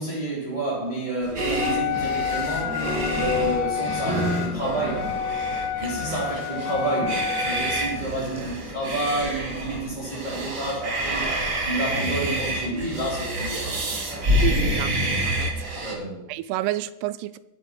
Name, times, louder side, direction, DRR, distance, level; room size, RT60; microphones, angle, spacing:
voice 1, 0.0-2.8 3.2-5.1 5.8-13.8 14.1-14.3 15.8-16.2, right 1 dB, 10° right, -6 dB, 2.6 m, -29 dB
sound 1, 1.2-14.5, right 1 dB, 35° right, 1.9 m, -35 dB
sound 2, 1.3-15.9, right 1 dB, 65° right, 0.8 m, -29 dB
Wind instrument woodwind instrument, 1.6-8.1, left 8 dB, 75° left, 2.0 m, -29 dB
voice 2, 14.4-15.0 15.2-15.5 16.3-17.4, right 15 dB, 85° right, 16 dB, 2.6 m, -29 dB
23.0 x 8.4 x 4.4 m, 0.93 s
omnidirectional pair, 4.6 m